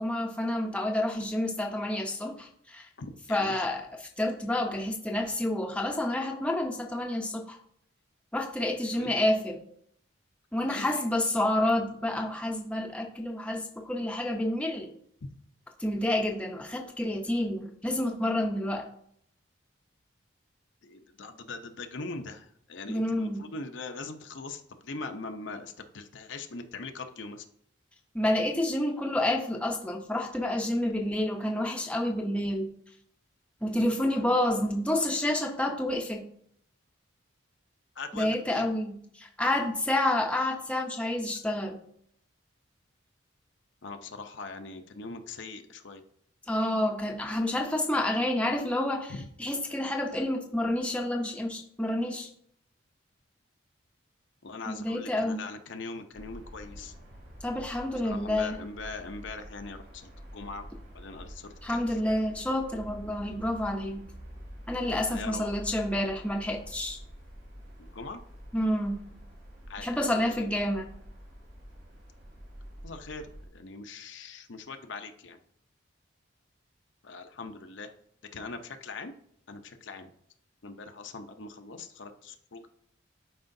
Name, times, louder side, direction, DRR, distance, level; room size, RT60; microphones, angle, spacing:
voice 1, 0.0-2.9 3.3-7.6 8.3-9.6 10.5-14.9 15.8-18.9 22.9-23.5 28.1-32.7 33.6-36.2 38.1-41.8 46.5-49.1 49.4-52.3 54.7-55.4 57.4-58.5 61.6-64.1 64.7-67.0 68.5-69.0 69.8-70.9, left 1 dB, 5° left, 1 dB, 0.7 m, -29 dB
voice 2, 3.0-3.6 8.9-9.1 10.7-11.0 20.8-27.5 38.0-38.7 43.8-46.0 49.1-49.3 54.4-56.9 57.9-60.7 60.9-62.0 65.1-65.5 67.8-68.2 69.7-70.5 72.8-75.4 77.0-77.9 78.3-79.1 79.5-80.1 80.6-82.7, left 3 dB, 65° left, 6 dB, 0.7 m, -41 dB
sound 1, 56.1-73.5, equal, 85° right, 3.2 m, -47 dB
11.5 x 4.9 x 2.7 m, 0.67 s
head